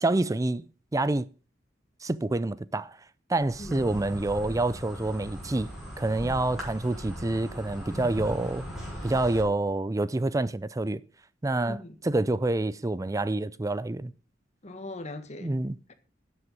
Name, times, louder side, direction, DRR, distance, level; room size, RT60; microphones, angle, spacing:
voice 1, 0.0-0.7 0.9-1.3 2.0-3.0 3.3-5.7 6.0-8.6 9.0-11.0 11.4-11.8 12.0-14.1 15.4-15.8, right 2 dB, 20° right, 0.4 m, -27 dB
Insect, 3.4-9.4, equal, ahead, 5.8 m, -39 dB
voice 2, 11.7-12.0 14.6-15.6, left 1 dB, 40° left, 1.5 m, -40 dB
12.5 x 7.7 x 5.3 m
head